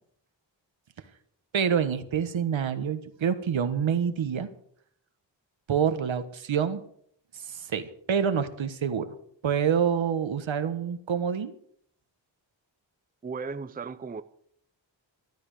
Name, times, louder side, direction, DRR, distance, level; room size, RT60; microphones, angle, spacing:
voice 1, 1.5-4.5 5.7-6.8 7.5-9.2 9.4-11.6, right 7 dB, 80° right, 1.4 m, -27 dB
voice 2, 13.2-14.2, right 5 dB, 20° right, 0.5 m, -35 dB
13.5 x 12.0 x 6.6 m
wide cardioid pair, 160°, 46 cm